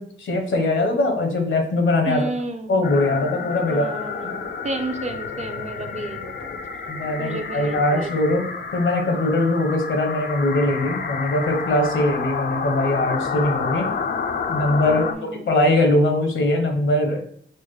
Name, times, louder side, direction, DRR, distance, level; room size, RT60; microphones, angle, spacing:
voice 1, 0.0-2.2 2.7-3.9 4.2-4.3 6.5-8.4 8.7-13.9 14.5-17.2, left 2 dB, 70° left, 4 dB, 0.9 m, -21 dB
voice 2, 2.1-2.7 3.7-6.6 7.2-8.1 14.9-15.5, right 2 dB, 35° right, 5 dB, 0.5 m, -31 dB
sound 1, 2.8-15.1, left 5 dB, 50° left, 0.4 m, -29 dB
4.3 x 2.1 x 3.1 m, 0.65 s
cardioid pair, 55°, 21 cm